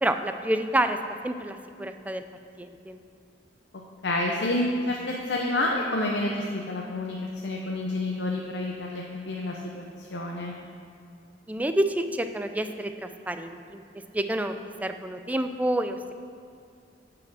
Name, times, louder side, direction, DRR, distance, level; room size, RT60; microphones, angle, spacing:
voice 1, 0.0-1.0 1.2-2.2 2.6-3.0 11.5-13.8 14.1-14.5 14.8-16.1, right 1 dB, 10° right, 8 dB, 0.4 m, -28 dB
voice 2, 4.0-7.2 7.4-10.5, left 1 dB, 70° left, -1 dB, 0.7 m, -29 dB
9.4 x 4.9 x 6.2 m, 2.4 s
head